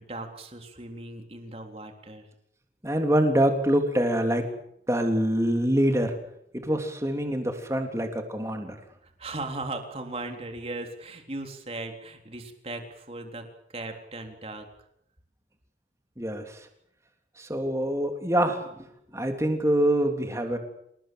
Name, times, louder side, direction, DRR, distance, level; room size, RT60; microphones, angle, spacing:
voice 1, 0.0-2.3 9.0-14.7, right 2 dB, 35° right, 4 dB, 3.8 m, -38 dB
voice 2, 2.8-4.4 4.9-6.1 6.5-8.8 16.2-16.6 17.4-18.9 19.1-20.6, right 1 dB, 15° right, 4 dB, 3.4 m, -25 dB
28.0 x 19.5 x 7.8 m, 0.75 s
head